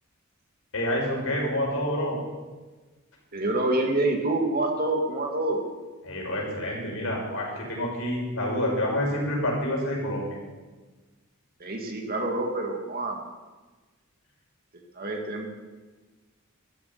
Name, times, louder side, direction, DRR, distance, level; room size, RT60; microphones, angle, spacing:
voice 1, 0.7-2.2 6.0-10.4, left 1 dB, 70° left, -2 dB, 5.6 m, -28 dB
voice 2, 3.3-5.6 11.6-13.2 14.9-15.5, right 2 dB, 45° right, 2 dB, 2.2 m, -27 dB
13.5 x 8.5 x 9.6 m, 1.3 s
head